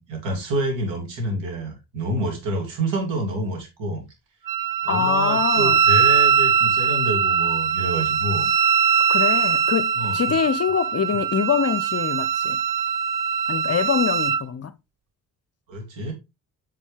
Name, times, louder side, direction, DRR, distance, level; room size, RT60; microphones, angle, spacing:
voice 1, 0.0-4.0 4.8-8.5 9.9-10.4 15.7-16.1, right 1 dB, 65° right, 3.1 m, -28 dB
Wind instrument woodwind instrument, 4.5-14.4, right 7 dB, 40° right, 1.0 m, -21 dB
voice 2, 4.9-5.8 9.1-12.6 13.5-14.7, left 7 dB, 30° left, 0.7 m, -24 dB
8.3 x 5.4 x 3.3 m
hypercardioid pair, 40°, 47 cm